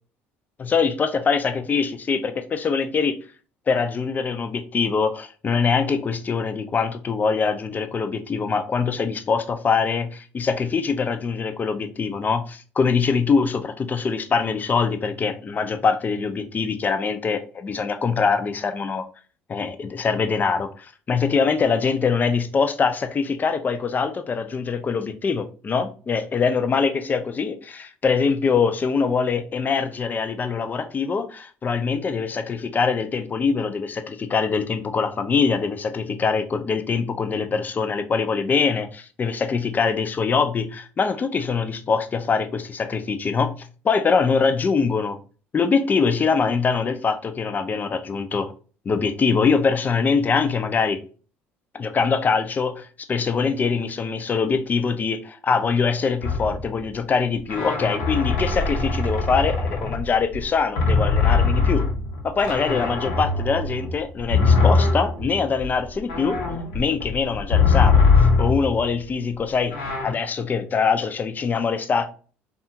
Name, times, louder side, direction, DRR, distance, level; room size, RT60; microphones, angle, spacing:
voice 1, 0.7-3.1 3.7-19.0 19.5-45.2 45.5-48.5 48.9-51.0 51.7-61.8 62.2-66.4 66.7-68.0 68.4-69.8 70.0-72.1, left 5 dB, 30° left, 0.4 m, -23 dB
sound 1, 56.2-56.8 57.5-60.4 60.8-68.9 69.7-70.1, left 4 dB, 80° left, 0.8 m, -21 dB
2.7 x 2.4 x 2.6 m
hypercardioid pair, 70°, 6 cm